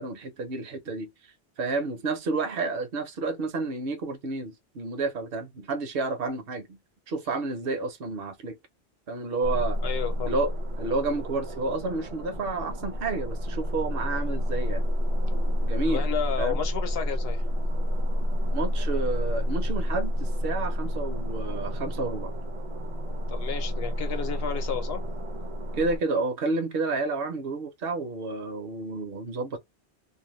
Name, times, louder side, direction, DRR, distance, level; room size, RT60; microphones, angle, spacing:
voice 1, 0.0-6.8 7.1-8.6 9.1-9.8 10.2-10.5 10.8-14.8 15.6-16.1 16.4-16.6 18.5-22.3 25.8-29.6, right 3 dB, 60° right, 0.9 m, -30 dB
sound 1, 9.4-26.0, equal, 40° right, 0.5 m, -29 dB
voice 2, 9.8-10.4 15.9-17.4 23.3-25.0, left 8 dB, 65° left, 0.9 m, -32 dB
2.6 x 2.1 x 3.0 m
omnidirectional pair, 1.1 m